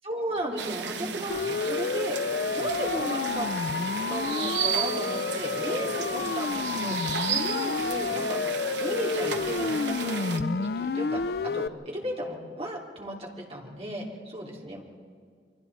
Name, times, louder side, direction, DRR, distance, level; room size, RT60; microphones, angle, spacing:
voice 1, 0.0-2.2 2.5-3.5 4.1-8.4 8.8-14.8, right 1 dB, 35° right, -2 dB, 3.2 m, -35 dB
sound 1, 0.6-10.4, right 7 dB, 85° right, 1.0 m, -34 dB
Siren, 1.3-11.7, left 4 dB, 60° left, 0.4 m, -30 dB
29.0 x 23.5 x 4.2 m, 2.1 s
head